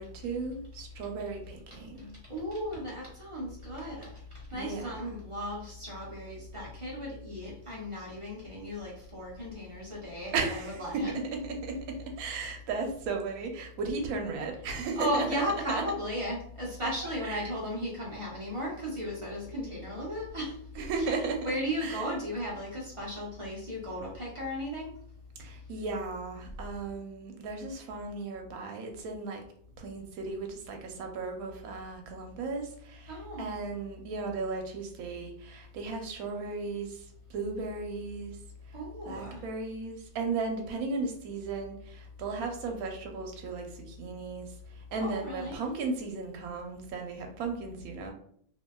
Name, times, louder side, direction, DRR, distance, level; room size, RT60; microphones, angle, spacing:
voice 1, 0.0-2.1 4.5-5.0 10.3-11.8 12.2-15.8 17.2-17.5 20.8-21.5 21.8-22.1 25.4-29.4 29.8-37.0 37.3-38.4 39.1-44.5 44.8-48.1, right 4 dB, 65° right, 2 dB, 1.0 m, -35 dB
voice 2, 2.3-4.1 4.5-11.2 15.0-21.1 21.4-24.9 33.1-33.5 38.7-39.4 45.0-45.6, equal, 45° right, -5 dB, 0.4 m, -35 dB
2.7 x 2.7 x 2.2 m, 0.63 s
omnidirectional pair, 1.8 m